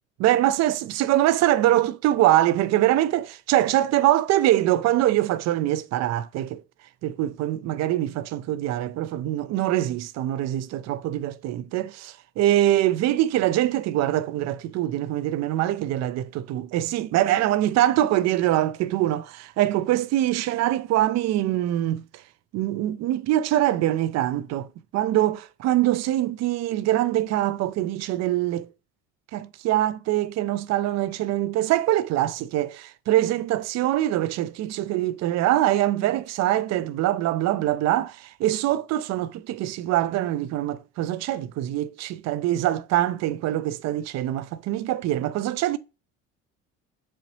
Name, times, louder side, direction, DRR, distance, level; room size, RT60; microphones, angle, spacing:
voice 1, 0.2-6.6 7.0-22.0 22.5-24.7 24.9-28.7 29.3-45.8, right 14 dB, 60° right, 0.5 m, -23 dB
4.2 x 2.8 x 3.0 m
supercardioid pair, 85°, 30 cm